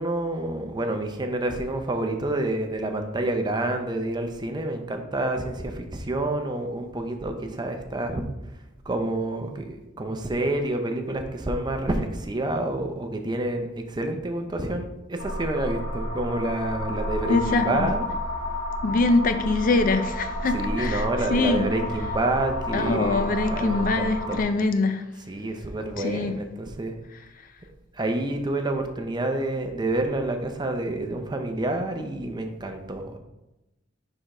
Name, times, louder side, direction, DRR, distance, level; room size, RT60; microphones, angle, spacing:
voice 1, 0.0-8.2 8.9-18.1 20.5-24.5 25.3-26.9 27.9-33.2, right 2 dB, 25° right, 0.6 m, -28 dB
sound 1, 15.2-24.4, left 1 dB, 80° left, 1.7 m, -31 dB
voice 2, 17.3-17.9 18.8-21.0 21.3-21.7 22.7-25.0 26.0-26.4, left 3 dB, 45° left, 0.4 m, -23 dB
4.9 x 3.7 x 5.4 m
head